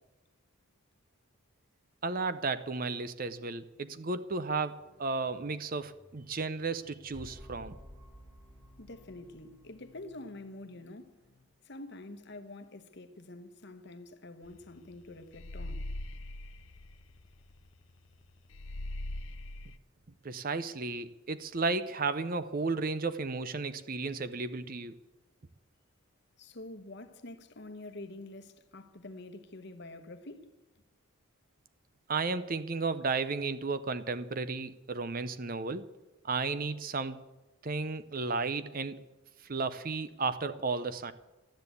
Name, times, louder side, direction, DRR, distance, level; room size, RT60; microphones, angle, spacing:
voice 1, 2.0-7.8 20.2-24.9 32.1-35.9 36.2-37.2 37.6-39.0 39.5-41.1, right 4 dB, 40° right, 0.7 m, -33 dB
sound 1, 4.8-11.4, equal, 15° right, 3.9 m, -55 dB
voice 2, 8.8-11.1 11.6-15.9 26.4-30.5, left 2 dB, 50° left, 1.0 m, -47 dB
sound 2, 14.5-14.7 14.9-17.8 18.1-18.2 18.5-19.8, left 1 dB, 65° left, 0.7 m, -41 dB
12.5 x 10.5 x 8.3 m
head